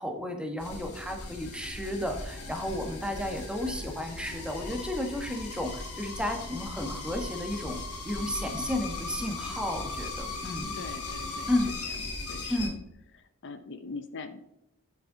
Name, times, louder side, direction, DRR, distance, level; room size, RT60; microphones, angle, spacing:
voice 1, 0.0-10.7 11.5-11.7 12.5-12.8, left 1 dB, 5° right, 4 dB, 1.3 m, -33 dB
sound 1, 0.6-12.7, left 3 dB, 90° left, 2.8 m, -38 dB
voice 2, 10.7-11.5 12.1-12.8 13.1-14.4, left 4 dB, 55° left, 9 dB, 0.7 m, -42 dB
8.1 x 7.4 x 3.9 m, 0.87 s
head